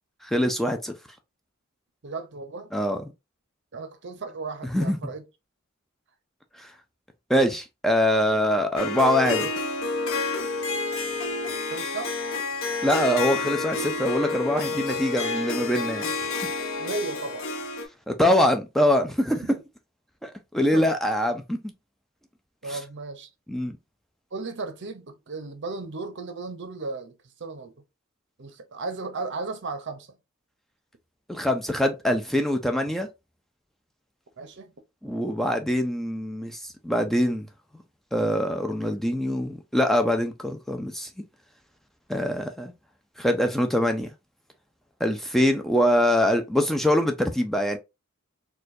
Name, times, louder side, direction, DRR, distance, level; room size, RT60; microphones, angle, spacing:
voice 1, 0.2-0.9 2.7-3.0 4.7-5.0 6.6-6.7 7.3-9.5 12.8-16.1 18.1-19.4 20.2-21.6 22.7-22.8 23.5-23.7 31.3-33.1 35.0-37.5 38.1-41.1 42.1-42.7 43.2-44.1 45.0-47.8, left 1 dB, ahead, 0.3 m, -24 dB
voice 2, 2.0-2.7 3.7-5.2 11.7-12.2 16.8-17.5 19.4-19.5 20.7-20.9 22.6-23.3 24.3-27.7 28.4-30.2 34.4-34.7, right 3 dB, 60° right, 0.7 m, -35 dB
Harp, 8.8-17.9, left 3 dB, 65° left, 0.6 m, -29 dB
4.3 x 2.3 x 2.6 m
head